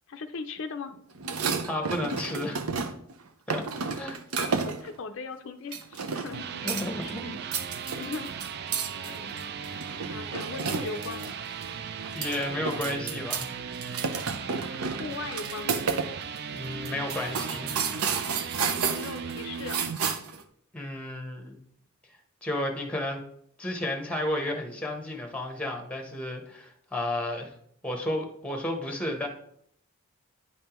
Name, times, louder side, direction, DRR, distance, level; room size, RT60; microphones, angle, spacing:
voice 1, 0.1-1.1 4.6-7.4 7.9-8.6 8.9-9.5 10.1-11.3 14.7-15.8 18.8-19.9, left 4 dB, 60° left, 7 dB, 0.4 m, -39 dB
sound 1, 1.1-3.1 3.5-4.9 5.7-6.4 6.7-7.1 7.4-11.3 11.6-11.7 12.0-13.5 13.7-16.1 16.4-16.5 16.8-20.4, right 5 dB, 85° right, 0.7 m, -31 dB
voice 2, 1.6-2.6 3.5-3.6 4.0-4.2 6.6-7.2 12.1-13.5 16.5-17.8 20.7-21.6 22.4-23.2 23.6-27.5 27.8-29.3, left 1 dB, 5° left, 3 dB, 1.0 m, -32 dB
sound 2, 6.1-20.0, right 6 dB, 50° right, 0.3 m, -37 dB
9.7 x 5.3 x 3.0 m, 0.68 s
head